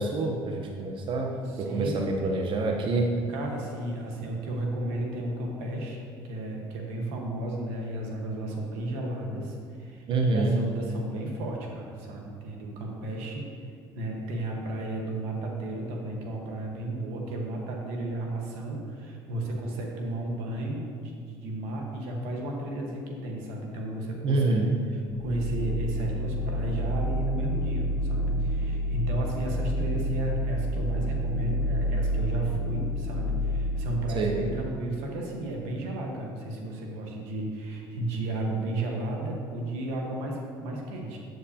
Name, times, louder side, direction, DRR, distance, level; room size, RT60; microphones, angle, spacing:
voice 1, 0.0-3.1 10.1-10.5 24.2-24.7 34.1-34.3, right 2 dB, 55° right, 2 dB, 0.9 m, -26 dB
voice 2, 1.4-2.1 3.3-6.0 6.2-10.1 10.3-13.4 13.9-24.6 24.9-41.2, right 1 dB, 85° right, 0 dB, 1.3 m, -33 dB
sound 1, 25.1-34.7, equal, 35° left, 0.8 m, -29 dB
8.1 x 7.8 x 2.8 m, 2.1 s
supercardioid pair, 75°, 10 cm